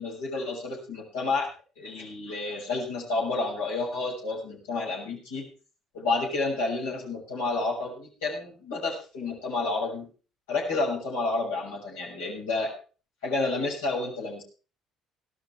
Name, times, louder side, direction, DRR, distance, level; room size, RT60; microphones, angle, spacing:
voice 1, 0.0-1.5 1.8-5.5 5.9-10.1 10.5-12.7 13.2-14.4, left 3 dB, 75° left, -1 dB, 6.4 m, -30 dB
17.0 x 12.5 x 4.7 m, 0.37 s
figure-of-eight pair, 50°, 0 cm